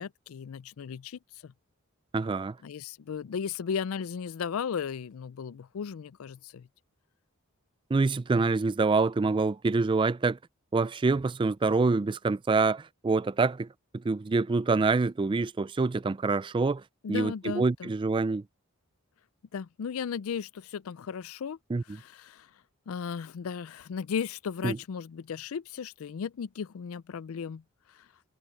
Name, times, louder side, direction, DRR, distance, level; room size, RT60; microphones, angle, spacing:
voice 1, 0.0-1.5 2.6-6.7 17.0-17.9 19.5-21.6 21.9-22.5 22.9-27.6 27.9-28.1, left 7 dB, 75° left, 0.4 m, -36 dB
voice 2, 2.1-2.6 7.9-10.4 10.7-13.7 13.9-16.8 17.1-18.4 21.7-21.8 24.6-24.8, right 3 dB, 20° right, 0.3 m, -26 dB
head